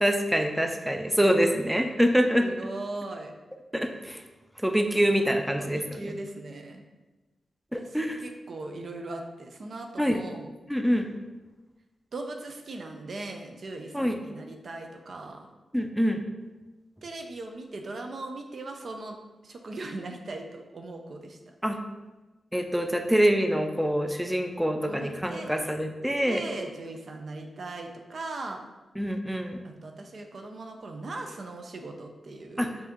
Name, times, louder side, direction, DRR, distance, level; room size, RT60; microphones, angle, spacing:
voice 1, 0.0-2.5 3.7-4.2 4.6-6.1 7.7-8.2 10.0-10.2 10.7-11.1 13.9-14.2 15.7-16.2 21.6-21.8 22.5-26.4 29.0-29.6 32.6-32.7, equal, 5° right, 5 dB, 0.5 m, -25 dB
voice 2, 2.4-3.3 5.6-6.8 7.8-10.5 12.1-15.5 17.0-19.2 19.4-21.5 24.9-25.5 26.2-28.6 29.6-32.8, right 2 dB, 65° right, 3 dB, 0.5 m, -39 dB
5.4 x 2.7 x 2.9 m, 1.2 s
supercardioid pair, 45°, 0 cm